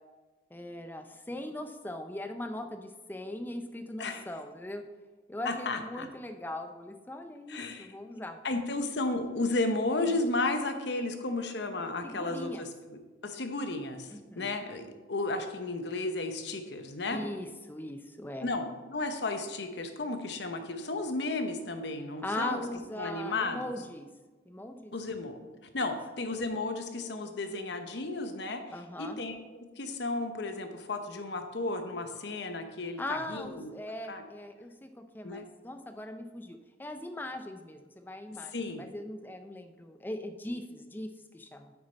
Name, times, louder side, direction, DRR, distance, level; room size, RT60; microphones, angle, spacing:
voice 1, 0.5-4.8 5.3-8.4 12.0-12.6 14.1-14.5 17.1-18.5 22.2-24.1 24.5-24.9 28.7-29.2 33.0-41.7, left 1 dB, 10° left, 7 dB, 0.4 m, -40 dB
voice 2, 5.4-6.1 7.5-7.9 8.1-17.2 18.4-22.6 23.0-23.7 24.9-25.5 25.7-28.6 29.0-29.3 29.8-33.7 34.1-34.2 35.2-35.4 38.5-38.8, left 2 dB, 65° left, 6 dB, 0.8 m, -33 dB
8.1 x 6.4 x 4.1 m, 1.3 s
head